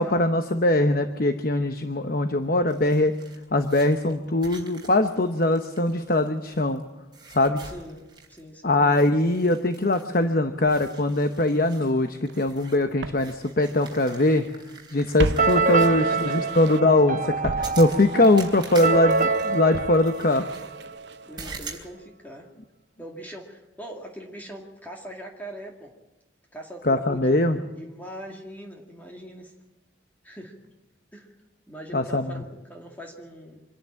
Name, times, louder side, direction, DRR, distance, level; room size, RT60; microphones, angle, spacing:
voice 1, 0.0-3.1 3.5-6.8 7.3-7.6 8.6-14.4 14.9-20.5 26.8-27.6 31.9-32.3, left 2 dB, 50° left, 7 dB, 0.9 m, -22 dB
sound 1, 2.7-6.8 7.1-8.5 8.8-10.3 10.6-16.6 17.6-20.7 21.4-21.9, right 4 dB, 25° right, 3.7 m, -45 dB
voice 2, 7.6-8.8 15.9-16.6 21.3-22.5 23.0-25.9 26.5-29.5 30.2-30.6 31.1-31.3 31.7-33.6, equal, 10° left, 0 dB, 2.2 m, -42 dB
Walk footsteps, 12.3-12.4 13.0-14.5 14.8-17.0 17.4-21.5 21.7-21.8, right 3 dB, 60° right, 0.6 m, -36 dB
sound 2, 15.4-21.1, right 4 dB, 45° right, 1.0 m, -26 dB
25.5 x 10.5 x 9.9 m, 1.1 s
head